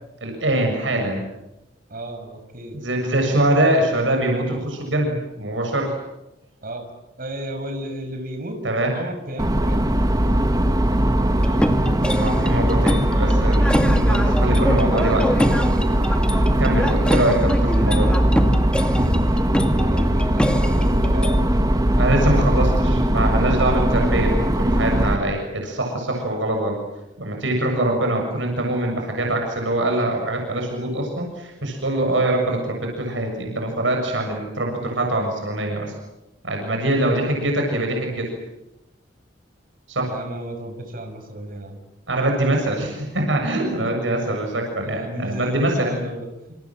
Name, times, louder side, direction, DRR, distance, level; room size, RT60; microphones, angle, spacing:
voice 1, 0.2-1.2 2.7-5.9 8.6-8.9 12.1-15.5 16.6-18.2 22.0-26.8 27.2-35.9 36.4-38.3 39.9-40.1 42.1-46.0, right 1 dB, 85° right, 2 dB, 7.0 m, -23 dB
voice 2, 1.9-2.8 6.6-6.9 7.2-8.6 8.9-9.9 19.8-22.8 40.1-41.8 43.4-43.9 44.8-46.5, right 1 dB, 50° right, 6 dB, 6.1 m, -33 dB
sound 1, 9.4-25.1, right 1 dB, 20° right, 1.9 m, -19 dB
sound 2, 11.4-21.4, equal, 5° left, 2.1 m, -25 dB
28.0 x 27.5 x 7.5 m, 0.95 s
head